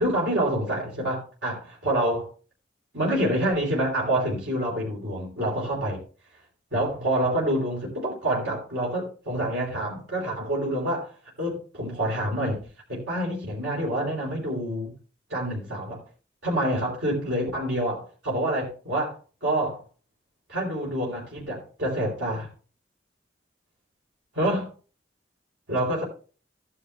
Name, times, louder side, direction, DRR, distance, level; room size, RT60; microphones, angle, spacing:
voice 1, 0.0-2.3 2.9-6.0 6.7-12.6 12.9-14.9 15.3-16.0 16.4-19.2 19.4-19.8 20.5-22.5 24.3-24.7 25.7-26.0, right 1 dB, 80° right, 3.3 m, -27 dB
14.5 x 9.9 x 2.3 m
head